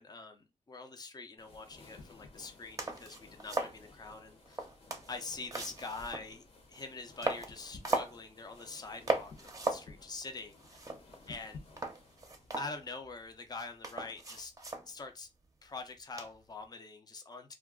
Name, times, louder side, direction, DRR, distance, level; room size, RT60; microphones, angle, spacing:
voice 1, 0.0-4.7 5.1-10.8 11.3-11.6 12.6-14.5 14.9-15.3 15.6-17.5, left 3 dB, 30° left, 0.6 m, -45 dB
sound 1, 1.4-12.6, left 3 dB, 50° left, 0.9 m, -55 dB
sound 2, 2.4-2.5 2.8-3.8 4.5-6.3 6.7-6.8 7.2-8.2 8.6-8.8 9.1-9.9 10.2-10.3 10.5-11.4 11.8-13.1 13.6-14.9 16.2-16.5, right 2 dB, 25° right, 0.7 m, -37 dB
2.3 x 2.2 x 3.5 m
cardioid pair, 80°, 13 cm